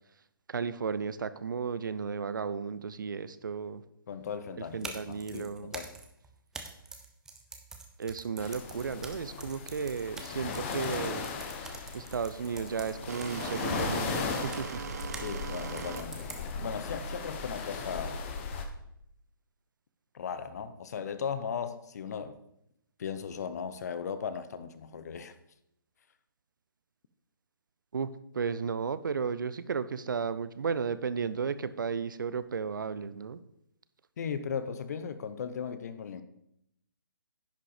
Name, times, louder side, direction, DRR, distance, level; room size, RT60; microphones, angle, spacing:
voice 1, 0.5-3.8 4.7-5.7 8.0-11.3 11.9-14.8 27.9-28.1 28.3-33.4, right 6 dB, 60° right, 0.7 m, -34 dB
voice 2, 4.1-5.9 15.2-16.3 16.6-18.2 20.1-22.4 23.0-25.3 34.2-36.2, left 6 dB, 45° left, 0.8 m, -37 dB
sound 1, 4.6-15.3 15.8-16.7, right 3 dB, 5° right, 0.6 m, -46 dB
sound 2, 8.4-18.7, left 5 dB, 30° left, 1.2 m, -37 dB
sound 3, 12.0-17.9, right 6 dB, 45° right, 1.0 m, -41 dB
10.0 x 5.9 x 5.1 m
figure-of-eight pair, 140°, 12 cm